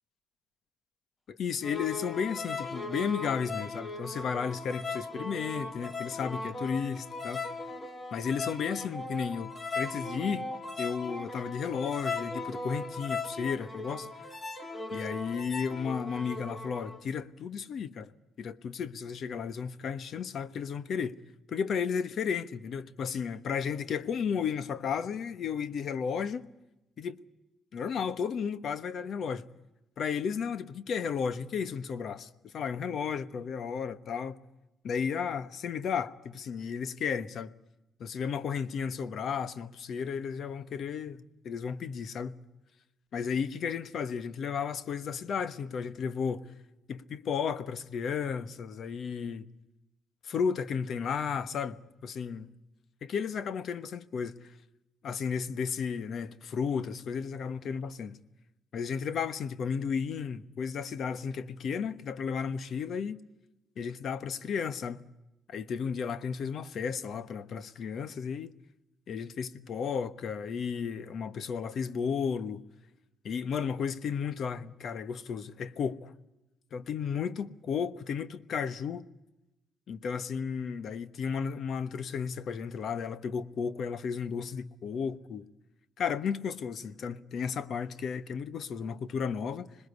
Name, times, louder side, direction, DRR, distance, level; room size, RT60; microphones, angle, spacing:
voice 1, 1.3-7.4 8.1-10.5 10.8-14.1 14.9-18.1 18.4-21.2 21.5-26.5 27.0-27.2 27.7-29.5 30.0-34.4 34.8-37.5 38.0-42.4 43.1-46.5 46.9-49.5 50.2-52.5 53.0-54.4 55.0-58.2 58.7-63.2 63.8-65.0 65.5-68.5 69.1-72.6 73.2-76.1 76.7-79.1 79.9-85.5 86.0-89.8, left 6 dB, 60° left, 1.2 m, -33 dB
sound 1, 1.6-17.0, left 3 dB, 25° left, 2.7 m, -38 dB
26.0 x 20.5 x 8.2 m
cardioid pair, 90°, 0 cm